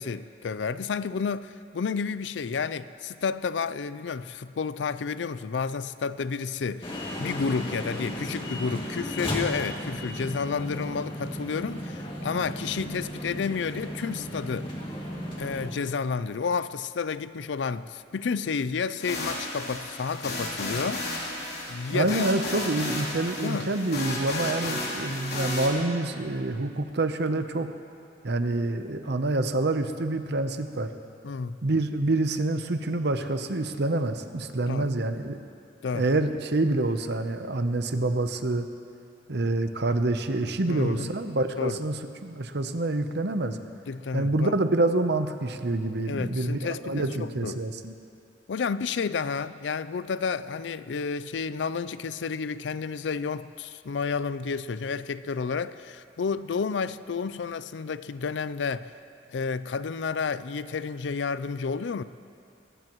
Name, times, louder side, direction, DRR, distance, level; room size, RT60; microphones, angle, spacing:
voice 1, 0.0-6.9 7.2-14.7 15.4-21.1 21.7-22.3 23.4-23.7 31.2-31.6 34.7-34.9 35.8-36.1 40.7-41.1 41.6-41.8 43.9-44.5 46.1-47.6 48.5-58.9 59.3-62.0, left 5 dB, 90° left, 15 dB, 0.5 m, -31 dB
sound 1, 6.8-15.7, equal, 30° left, 2.3 m, -35 dB
sound 2, 19.0-25.7, left 2 dB, 60° left, 3.3 m, -33 dB
voice 2, 21.9-27.7 28.2-30.9 31.6-35.4 35.9-38.7 39.3-41.9 42.2-43.6 44.1-47.9, right 2 dB, 65° right, 8 dB, 0.8 m, -27 dB
21.5 x 18.0 x 3.1 m, 2.5 s
head